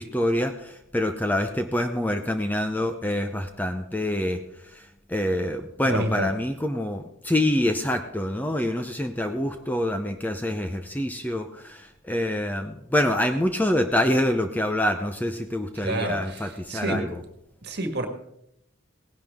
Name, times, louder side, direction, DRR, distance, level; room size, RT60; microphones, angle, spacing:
voice 1, 0.0-17.1, left 1 dB, 10° left, 6 dB, 0.6 m, -26 dB
voice 2, 5.8-6.3 15.8-17.1 17.6-18.1, right 1 dB, 55° right, 5 dB, 1.7 m, -29 dB
17.5 x 11.0 x 3.6 m, 0.79 s
head